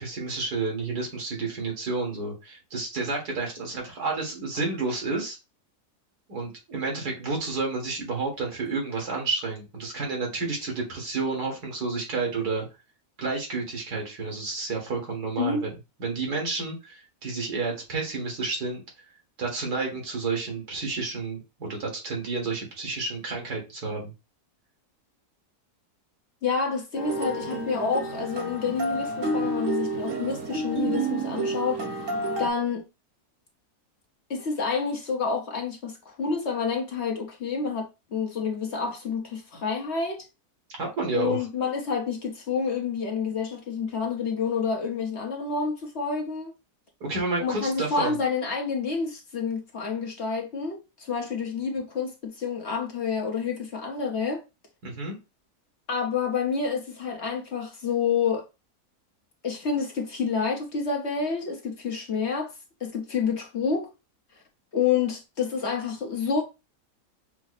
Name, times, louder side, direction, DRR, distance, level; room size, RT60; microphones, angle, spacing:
voice 1, 0.0-5.4 6.3-12.7 13.2-15.7 16.0-18.8 19.4-24.1 40.8-41.5 47.0-48.1 54.8-55.1, right 3 dB, 85° right, 2.2 m, -30 dB
voice 2, 26.4-31.8 32.4-32.8 34.3-40.2 41.1-46.5 47.4-54.4 55.9-58.4 59.4-62.5 62.8-63.9 64.7-66.4, left 5 dB, 50° left, 1.0 m, -28 dB
sound 1, 26.9-32.5, right 2 dB, 60° right, 1.4 m, -30 dB
5.9 x 2.0 x 4.0 m
omnidirectional pair, 1.6 m